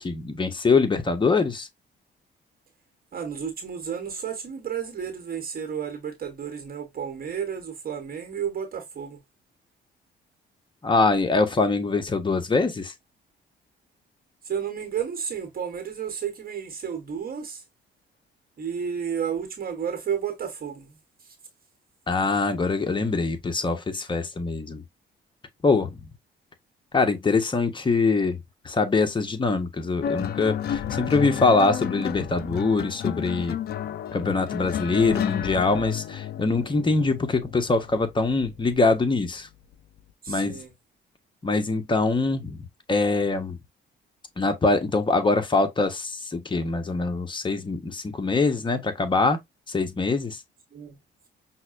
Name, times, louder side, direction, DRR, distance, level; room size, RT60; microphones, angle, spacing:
voice 1, 0.0-1.7 10.8-12.9 22.1-24.8 25.6-26.0 26.9-28.4 28.6-33.6 34.1-39.5 40.3-40.6 41.4-43.6 44.4-49.4 49.7-50.4, left 3 dB, 25° left, 0.8 m, -23 dB
voice 2, 3.1-9.2 14.4-17.6 18.6-20.9 21.2-21.4 31.2-31.7 40.2-40.7 50.7-51.0, right 7 dB, 45° right, 1.0 m, -32 dB
sound 1, 30.0-38.7 39.7-40.0, left 10 dB, 55° left, 0.4 m, -31 dB
5.6 x 2.1 x 2.3 m
cardioid pair, 90°, 20 cm